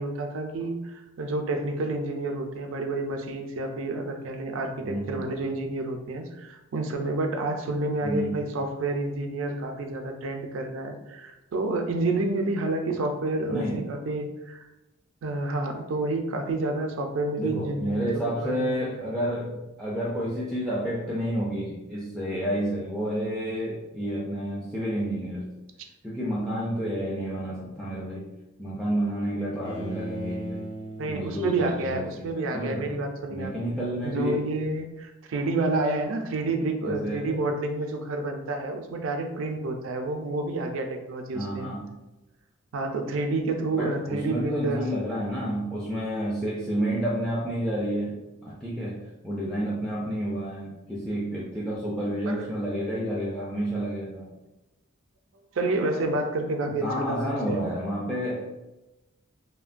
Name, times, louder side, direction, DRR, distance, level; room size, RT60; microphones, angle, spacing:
voice 1, 0.0-14.7 15.2-19.0 31.0-33.5 34.0-41.7 42.7-44.8 52.3-52.5 55.5-57.6, right 2 dB, 70° right, 4 dB, 0.4 m, -29 dB
voice 2, 4.8-5.3 8.0-8.5 13.4-13.9 17.4-25.5 26.0-28.3 28.6-30.7 31.0-32.3 32.5-32.9 33.3-34.4 36.8-37.3 41.3-42.0 43.7-54.3 56.7-58.5, equal, ahead, -6 dB, 0.3 m, -30 dB
Bowed string instrument, 29.6-32.7, right 2 dB, 60° left, 0.7 m, -39 dB
2.9 x 2.1 x 2.4 m, 1.0 s
head